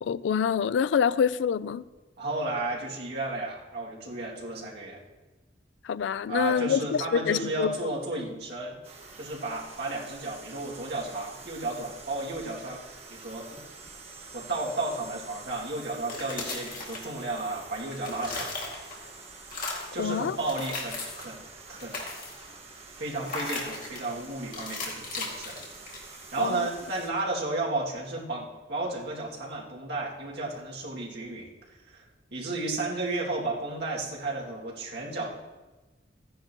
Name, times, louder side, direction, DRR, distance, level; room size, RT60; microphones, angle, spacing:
voice 1, 0.0-1.8 5.8-7.7 20.0-20.4 26.4-26.7, left 7 dB, 75° left, 0.3 m, -26 dB
voice 2, 2.2-5.0 6.3-8.8 9.2-13.5 14.3-18.5 19.9-21.4 21.7-22.0 23.0-25.6 26.3-31.5 31.9-35.3, right 2 dB, 60° right, 2.2 m, -33 dB
sound 1, 8.8-27.1, right 4 dB, 35° right, 1.5 m, -47 dB
sound 2, 15.9-17.5 17.8-19.1 19.4-20.0 20.4-21.3 21.7-22.5 23.3-24.1 24.5-26.2, left 3 dB, 45° left, 2.3 m, -37 dB
15.0 x 10.0 x 2.9 m
head